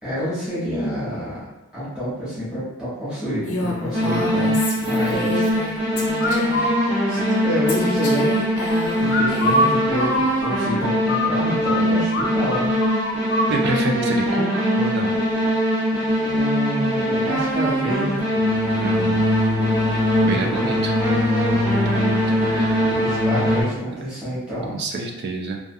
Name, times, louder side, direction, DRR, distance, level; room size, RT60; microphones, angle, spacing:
voice 1, 0.0-1.5 1.7-5.5 7.1-8.4 8.9-12.7 16.2-18.2 20.2-20.7 22.9-24.8, equal, 5° right, -12 dB, 0.9 m, -28 dB
Female speech woman speaking, 3.4-5.7 6.0-6.7 7.7-9.8, left 1 dB, 85° left, 0.6 m, -29 dB
sound 1, 3.9-23.6, equal, 85° right, 0.9 m, -21 dB
sound 2, 6.2-6.8 9.1-11.8 12.1-12.3 12.5-13.5, left 1 dB, 45° left, 0.4 m, -23 dB
voice 2, 13.5-15.5 18.8-19.4 20.2-20.9 21.5-22.9 24.7-25.6, right 3 dB, 50° right, 2 dB, 0.3 m, -29 dB
2.3 x 2.3 x 2.6 m, 0.96 s
head